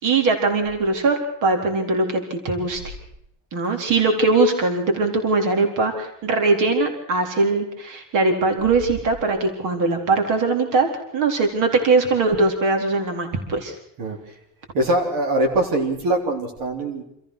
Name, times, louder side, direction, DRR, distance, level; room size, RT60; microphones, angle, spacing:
voice 1, 0.0-2.9 3.5-10.9 11.1-13.7, right 3 dB, 60° right, 4 dB, 4.1 m, -21 dB
voice 2, 14.7-17.0, right 1 dB, 75° right, 2 dB, 4.1 m, -22 dB
27.5 x 15.0 x 6.3 m, 0.75 s
cardioid pair, 145°, 35 cm